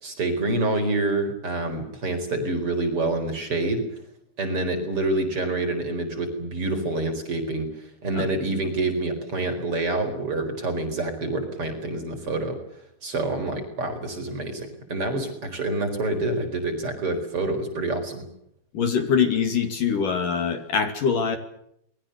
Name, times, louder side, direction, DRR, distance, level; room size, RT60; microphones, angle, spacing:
voice 1, 0.0-3.8 4.4-12.6 13.0-18.2, right 2 dB, 35° right, 6 dB, 5.1 m, -27 dB
voice 2, 18.7-21.4, left 6 dB, 55° left, 7 dB, 3.8 m, -23 dB
28.0 x 22.5 x 6.8 m, 0.73 s
omnidirectional pair, 4.8 m